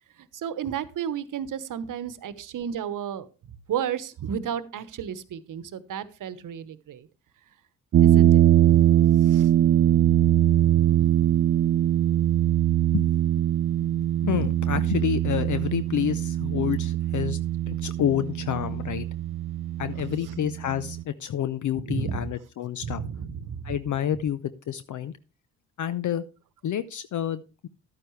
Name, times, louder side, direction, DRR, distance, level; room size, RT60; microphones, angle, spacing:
voice 1, 0.2-3.3 3.7-7.1 8.0-8.9 9.2-9.5 9.8-11.3 21.8-22.3 22.8-23.8, right 8 dB, 60° right, 15 dB, 1.1 m, -33 dB
sound 1, 7.9-21.0, right 12 dB, 40° right, 0.4 m, -22 dB
voice 2, 14.2-17.4 17.7-19.0 19.8-23.0 23.6-25.1 25.8-26.2 26.6-27.7, left 10 dB, 55° left, 14 dB, 0.7 m, -29 dB
12.0 x 9.2 x 3.2 m, 0.31 s
supercardioid pair, 65°, 35 cm